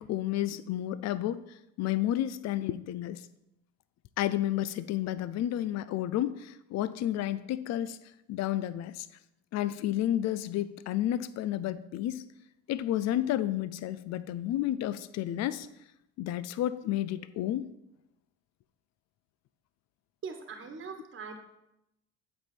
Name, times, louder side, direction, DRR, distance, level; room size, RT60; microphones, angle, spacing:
voice 1, 0.0-1.4 1.8-3.2 4.2-8.0 8.3-9.1 9.5-12.2 12.7-15.7 16.2-17.7, left 12 dB, 60° left, 15 dB, 0.5 m, -31 dB
voice 2, 20.2-21.6, right 5 dB, 40° right, 4 dB, 1.4 m, -42 dB
7.7 x 5.5 x 4.4 m, 0.85 s
cardioid pair, 95°, 31 cm